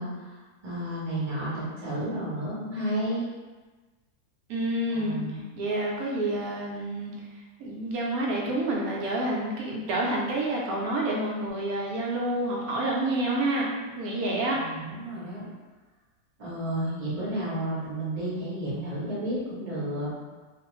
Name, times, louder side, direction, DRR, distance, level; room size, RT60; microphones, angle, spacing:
voice 1, 0.0-3.2 4.9-5.4 14.5-15.5 16.4-20.1, right 1 dB, 30° right, -9 dB, 0.8 m, -32 dB
voice 2, 4.5-5.2 5.5-7.1 7.6-13.7 14.0-14.6, right 1 dB, 70° right, -3 dB, 1.0 m, -28 dB
2.5 x 2.4 x 3.0 m, 1.3 s
omnidirectional pair, 1.7 m